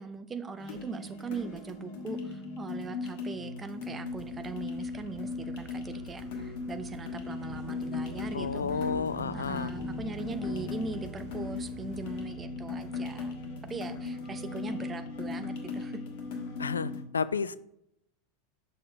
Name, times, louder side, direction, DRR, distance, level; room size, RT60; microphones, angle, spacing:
voice 1, 0.0-8.9 9.3-13.4 13.7-16.0, right 4 dB, 20° right, 9 dB, 0.7 m, -40 dB
sound 1, 0.6-17.0, left 4 dB, 55° left, 1.3 m, -38 dB
sound 2, 4.0-12.3, right 2 dB, 55° right, 2.3 m, -53 dB
sound 3, 7.3-15.8, equal, 30° left, 1.7 m, -46 dB
voice 2, 8.3-9.7 16.6-17.6, left 5 dB, 80° left, 17 dB, 0.3 m, -31 dB
6.6 x 5.8 x 3.3 m, 0.78 s
figure-of-eight pair, 85°, 0 cm